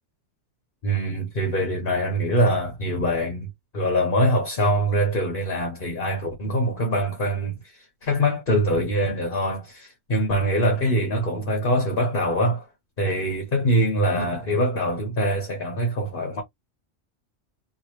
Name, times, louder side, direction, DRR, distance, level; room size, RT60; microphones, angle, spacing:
voice 1, 0.8-12.7 13.0-16.4, equal, 50° left, 1.3 m, -24 dB
3.1 x 3.1 x 2.9 m
omnidirectional pair, 1.2 m